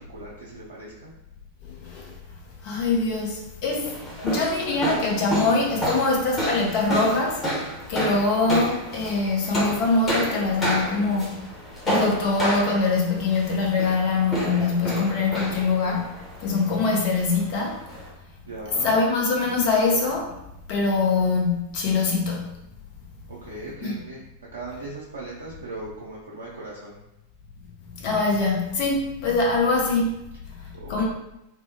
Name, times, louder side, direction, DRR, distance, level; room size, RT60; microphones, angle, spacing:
voice 1, 0.1-1.1 18.5-19.0 23.3-24.2 24.5-27.0 30.7-31.0, right 2 dB, 70° right, -6 dB, 0.5 m, -38 dB
voice 2, 1.7-2.1 2.6-4.0 4.2-7.4 7.9-11.3 11.9-16.1 16.4-17.8 18.8-20.3 20.7-22.5 23.8-23.9 28.0-30.1 30.9-31.0, left 3 dB, 45° left, -1 dB, 0.6 m, -23 dB
sound 1, 3.8-18.1, right 1 dB, 15° left, 1.0 m, -30 dB
3.3 x 2.0 x 2.9 m, 0.87 s
figure-of-eight pair, 90°, 0 cm